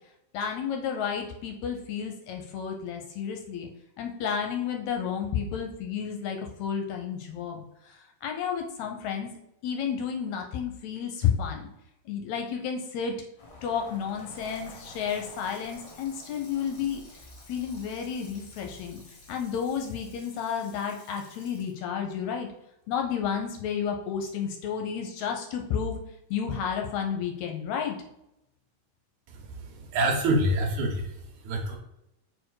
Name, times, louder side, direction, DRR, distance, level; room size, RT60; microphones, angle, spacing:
voice 1, 0.3-3.7 4.0-9.3 9.6-11.7 12.1-13.1 13.6-17.2 17.5-19.0 19.3-22.5 22.9-26.0 26.3-28.0, left 7 dB, 75° left, 3 dB, 1.9 m, -31 dB
sound 1, 13.4-20.3, left 1 dB, 50° left, 1.5 m, -51 dB
Water tap faucet / Sink (filling or washing), 14.1-23.3 23.7-23.8, left 2 dB, 30° left, 1.6 m, -55 dB
voice 2, 29.3-31.8, right 1 dB, 70° right, 3 dB, 2.2 m, -27 dB
4.6 x 4.3 x 4.7 m, 0.85 s
omnidirectional pair, 3.6 m